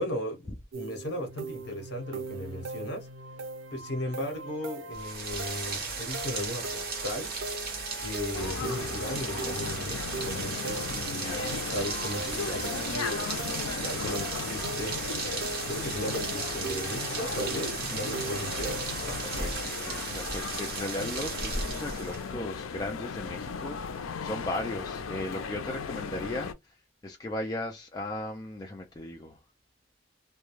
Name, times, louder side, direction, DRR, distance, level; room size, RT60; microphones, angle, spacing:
voice 1, 0.0-3.1 3.7-7.3 8.0-15.4 15.7-18.8, left 1 dB, 55° left, 1.0 m, -36 dB
sound 1, 0.7-19.5, right 2 dB, 75° right, 0.6 m, -41 dB
Rain, 4.9-22.3, right 4 dB, 45° right, 0.9 m, -35 dB
sound 2, 8.3-26.5, left 5 dB, 85° left, 0.4 m, -37 dB
voice 2, 19.3-26.8 27.0-29.4, left 1 dB, 20° left, 0.3 m, -37 dB
2.3 x 2.2 x 3.0 m
head